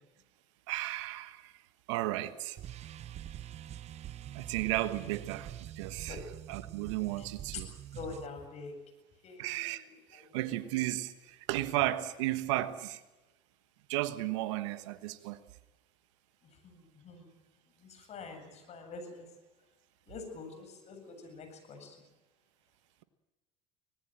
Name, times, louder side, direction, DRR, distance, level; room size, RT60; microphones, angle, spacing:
voice 1, 0.7-1.5 1.9-2.9 4.3-6.2 6.5-7.7 9.4-13.0 13.9-15.4, right 16 dB, 85° right, 1.4 m, -34 dB
sound 1, 2.6-8.3, right 12 dB, 45° right, 1.0 m, -45 dB
voice 2, 7.9-8.8 9.2-10.6 16.4-17.3 17.8-19.3 20.1-22.0, left 4 dB, 45° left, 7.9 m, -46 dB
25.0 x 19.0 x 7.7 m
supercardioid pair, 90°, 15 cm